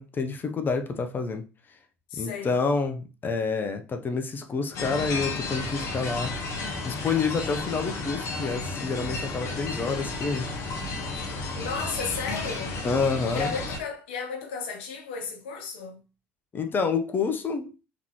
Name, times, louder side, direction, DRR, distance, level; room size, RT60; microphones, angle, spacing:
voice 1, 0.0-1.4 2.1-6.4 6.8-10.5 12.8-13.5 16.5-17.7, left 4 dB, 35° left, 0.8 m, -28 dB
voice 2, 2.1-2.7 11.6-12.8 13.3-16.0, left 5 dB, 80° left, 1.1 m, -34 dB
sound 1, 4.7-13.8, left 3 dB, 55° left, 1.3 m, -32 dB
3.9 x 3.6 x 3.1 m
hypercardioid pair, 70°, 6 cm